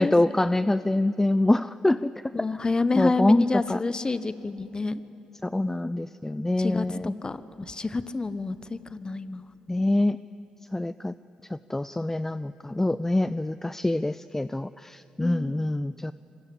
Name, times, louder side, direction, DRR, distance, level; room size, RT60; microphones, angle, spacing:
voice 1, 0.0-2.1 3.0-3.8 5.4-7.1 9.7-10.2 10.7-11.1 11.5-16.1, left 1 dB, 15° left, 15 dB, 0.5 m, -25 dB
voice 2, 2.3-5.0 6.6-6.8 7.2-9.5 15.2-15.6, left 3 dB, 30° left, 13 dB, 1.3 m, -28 dB
26.0 x 23.0 x 8.6 m, 3.0 s
hypercardioid pair, 50°, 3 cm